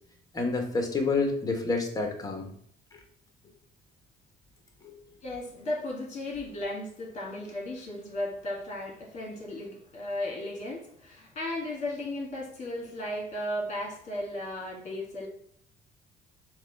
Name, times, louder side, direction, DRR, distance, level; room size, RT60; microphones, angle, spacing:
voice 1, 0.3-2.5, left 3 dB, 20° left, 3 dB, 1.1 m, -28 dB
voice 2, 5.2-15.3, left 1 dB, 45° left, -1 dB, 1.6 m, -35 dB
4.7 x 2.3 x 4.5 m, 0.62 s
cardioid pair, 110°, 17 cm